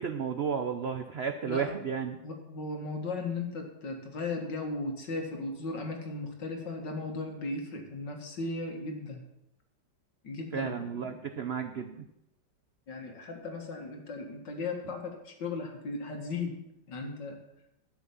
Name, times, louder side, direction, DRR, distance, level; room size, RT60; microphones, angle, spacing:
voice 1, 0.0-2.2 10.5-12.0, right 6 dB, 70° right, 7 dB, 0.6 m, -33 dB
voice 2, 2.2-9.2 10.2-11.2 12.9-16.6 16.9-17.4, left 3 dB, 70° left, 3 dB, 2.5 m, -36 dB
12.0 x 6.3 x 7.2 m, 0.85 s
omnidirectional pair, 2.0 m